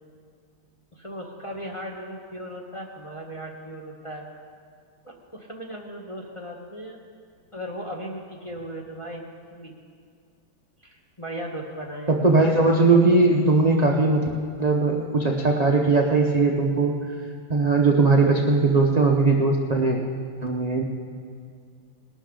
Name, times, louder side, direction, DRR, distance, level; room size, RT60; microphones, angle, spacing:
voice 1, 0.9-4.2 5.0-7.0 7.5-9.7 10.8-12.2, equal, 20° left, -1 dB, 1.0 m, -37 dB
voice 2, 12.2-14.2 14.6-16.9 17.5-20.0 20.4-20.8, right 3 dB, 40° right, 0 dB, 0.6 m, -19 dB
20.0 x 12.0 x 3.8 m, 2.2 s
omnidirectional pair, 2.0 m